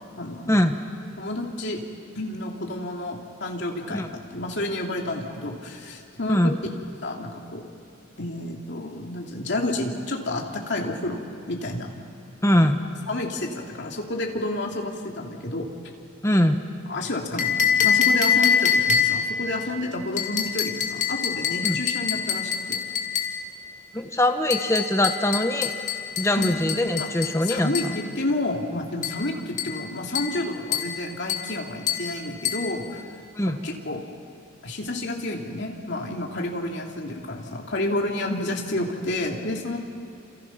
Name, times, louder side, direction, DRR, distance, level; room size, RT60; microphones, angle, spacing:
voice 1, 0.2-0.6 1.2-1.8 2.1-4.1 4.3-6.5 7.0-7.6 8.2-11.2 11.5-11.9 13.1-15.7 16.9-22.8 26.3-26.6 27.0-27.1 27.4-33.0 33.5-34.0 34.6-39.8, left 1 dB, 55° left, 0 dB, 2.9 m, -30 dB
voice 2, 12.4-12.9 16.2-16.6 21.6-21.8 23.9-25.7 26.2-28.0 33.3-33.6, left 1 dB, 15° left, 6 dB, 1.2 m, -22 dB
sound 1, 17.4-19.3 20.2-23.4 24.5-28.0 29.0-29.2 29.6-29.8 30.1-30.4 30.7-31.0 31.3-31.5 31.9-32.1 32.4-32.7, left 7 dB, 35° left, 2.5 m, -25 dB
29.0 x 28.0 x 5.9 m, 2.6 s
head